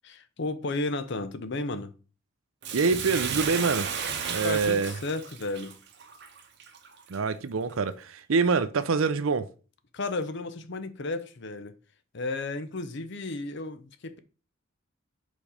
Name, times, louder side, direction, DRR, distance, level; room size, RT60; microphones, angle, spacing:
voice 1, 0.0-1.9 4.4-5.7 9.9-11.7 12.1-14.2, left 2 dB, 55° left, 0.6 m, -33 dB
Bathtub (filling or washing), 2.6-7.2 7.7-7.8, right 6 dB, 55° right, 0.9 m, -34 dB
voice 2, 2.7-3.9 4.3-4.9 7.1-9.5, right 4 dB, 75° right, 0.6 m, -25 dB
5.1 x 4.1 x 5.0 m
head